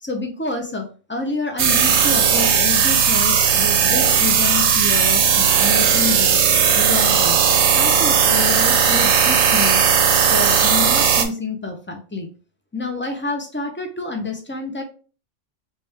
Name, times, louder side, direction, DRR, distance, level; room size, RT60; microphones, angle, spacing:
voice 1, 0.0-6.4 6.7-7.4 7.7-9.9 10.3-12.3 12.7-14.8, left 3 dB, 15° left, 3 dB, 0.4 m, -28 dB
sound 1, 1.6-11.3, right 7 dB, 85° right, 0.9 m, -16 dB
3.2 x 3.0 x 3.4 m, 0.36 s
omnidirectional pair, 1.2 m